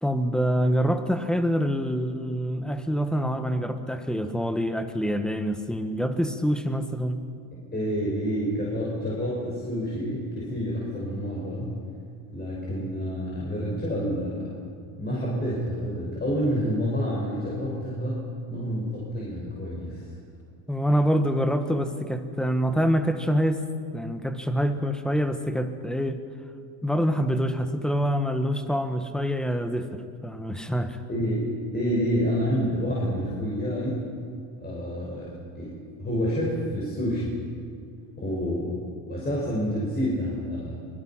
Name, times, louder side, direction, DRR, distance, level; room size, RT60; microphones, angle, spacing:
voice 1, 0.0-7.3 20.7-23.6 23.9-26.2 26.8-31.0, equal, ahead, 8 dB, 1.5 m, -26 dB
voice 2, 7.5-11.7 12.3-14.5 15.0-18.2 18.5-20.0 31.1-34.1 34.6-35.3 35.6-37.3 38.2-40.8, equal, 20° left, -6 dB, 6.0 m, -28 dB
25.0 x 21.5 x 5.9 m, 2.3 s
cardioid pair, 115°, 43 cm